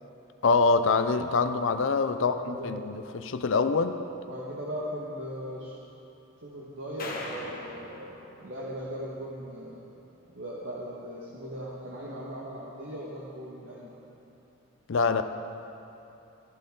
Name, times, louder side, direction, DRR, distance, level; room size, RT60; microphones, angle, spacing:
voice 1, 0.4-4.0 14.9-15.2, left 4 dB, 65° left, 9 dB, 0.5 m, -25 dB
voice 2, 2.1-2.7 4.3-5.7 6.4-8.0 8.4-9.9 10.3-13.9, equal, 65° right, -6 dB, 1.6 m, -38 dB
sound 1, 7.0-9.3, left 2 dB, 40° left, 1.4 m, -41 dB
15.0 x 14.5 x 3.8 m, 2.9 s
head